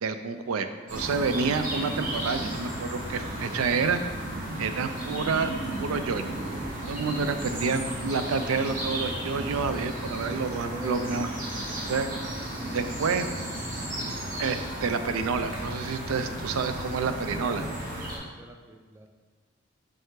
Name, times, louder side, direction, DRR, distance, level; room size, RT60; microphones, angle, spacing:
voice 1, 0.0-4.0 4.6-5.5 5.8-6.3 6.9-11.3 11.9-12.1 12.7-13.3 14.4-17.6, right 5 dB, 90° right, 9 dB, 0.4 m, -28 dB
sound 1, 0.9-18.2, right 1 dB, 40° right, 1.3 m, -34 dB
voice 2, 7.2-8.1 10.2-11.2 17.3-19.1, right 1 dB, 10° right, 3 dB, 0.4 m, -44 dB
5.5 x 5.4 x 3.7 m, 1.4 s
head